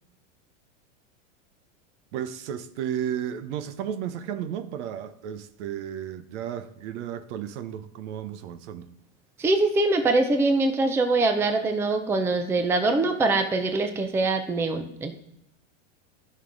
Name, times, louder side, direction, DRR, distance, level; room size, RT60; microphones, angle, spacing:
voice 1, 2.1-8.9, right 9 dB, 60° right, 0.9 m, -33 dB
voice 2, 9.4-15.1, right 2 dB, 5° right, 0.5 m, -23 dB
14.5 x 5.5 x 3.9 m
supercardioid pair, 140°, 39 cm